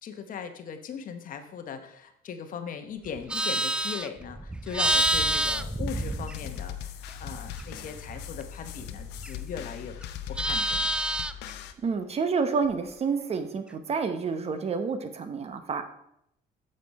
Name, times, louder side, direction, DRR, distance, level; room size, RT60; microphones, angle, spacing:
voice 1, 0.0-6.9 7.2-10.0 10.3-10.9, left 7 dB, 55° left, 8 dB, 0.9 m, -39 dB
Livestock farm animals working animals, 3.0-6.8 7.1-9.6 9.9-11.5, right 1 dB, 5° right, 0.3 m, -29 dB
sound 1, 4.9-11.7, left 10 dB, 85° left, 0.7 m, -40 dB
voice 2, 11.8-15.8, right 5 dB, 40° right, 9 dB, 0.9 m, -29 dB
8.2 x 6.7 x 4.2 m, 0.76 s
cardioid pair, 110°, 17 cm